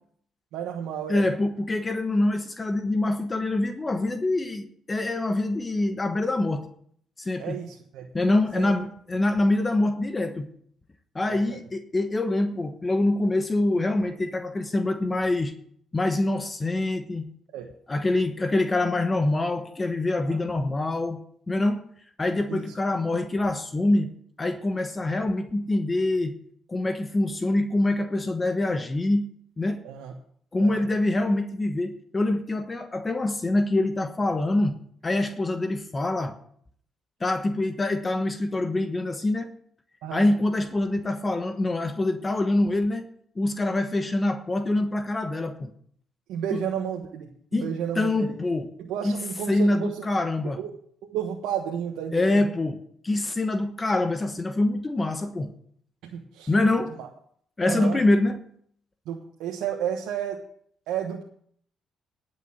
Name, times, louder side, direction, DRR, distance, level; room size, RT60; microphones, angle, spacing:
voice 1, 0.5-1.2 7.4-8.1 8.6-8.7 11.3-11.6 17.5-17.7 20.2-20.4 22.5-22.7 29.8-30.1 30.6-30.8 40.0-40.3 46.3-48.3 48.8-50.1 50.6-50.7 51.0-52.5 56.0-56.5 56.9-57.1 57.6-58.0 59.1-60.4 60.9-61.2, right 9 dB, 80° right, 1.2 m, -32 dB
voice 2, 1.1-6.7 7.2-7.6 8.1-10.5 11.1-15.5 15.9-17.3 17.9-21.8 22.2-26.4 26.7-29.8 30.5-34.8 35.0-36.4 37.2-39.5 40.1-43.1 43.4-45.7 47.5-48.7 49.0-49.2 49.5-50.6 52.1-52.8 53.0-55.5 56.5-56.9 57.6-58.4, left 2 dB, 25° left, 1.2 m, -25 dB
10.5 x 6.6 x 8.7 m
supercardioid pair, 65°, 0 cm